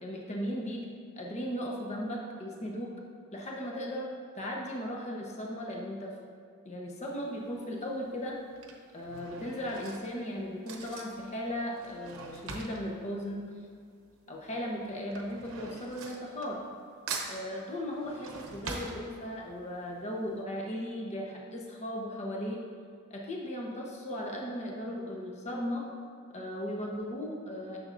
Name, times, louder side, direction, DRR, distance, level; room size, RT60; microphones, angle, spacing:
voice 1, 0.0-0.9 1.1-2.9 3.3-6.1 6.6-8.4 8.9-13.5 14.3-16.6 17.2-22.7 23.1-25.9 26.3-27.8, equal, 30° left, -1 dB, 1.0 m, -37 dB
Drawer open or close / Cutlery silverware, 7.1-7.5 8.3-14.2 14.4-16.8 17.1-19.6 20.0-20.1 20.3-20.4, right 4 dB, 75° right, 0.9 m, -43 dB
10.5 x 6.5 x 2.6 m, 2.2 s
head